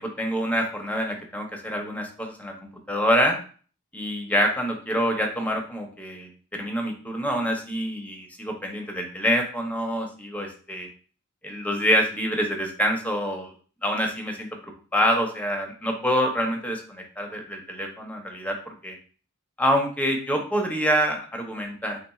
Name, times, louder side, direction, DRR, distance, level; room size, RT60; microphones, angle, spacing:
voice 1, 0.0-3.4 3.9-10.9 11.4-13.5 13.8-19.0 19.6-22.0, equal, 5° left, 2 dB, 0.7 m, -26 dB
4.1 x 3.3 x 2.3 m, 0.41 s
head